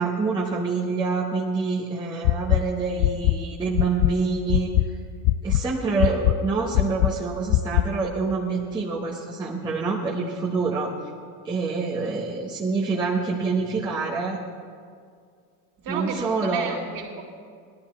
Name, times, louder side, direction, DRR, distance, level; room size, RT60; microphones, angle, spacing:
voice 1, 0.0-4.7 5.4-10.9 11.4-14.4 15.9-16.8, right 4 dB, 10° right, -6 dB, 1.0 m, -26 dB
sound 1, 2.2-2.6 3.0-3.3 3.7-4.1 4.5-4.8 5.2-5.6 6.0-6.3 6.7-7.1 7.5-7.8, left 18 dB, 80° left, 0.5 m, -19 dB
voice 2, 15.8-17.2, right 5 dB, 45° right, 0 dB, 2.4 m, -32 dB
16.0 x 11.5 x 4.3 m, 2.2 s
cardioid pair, 145°, 47 cm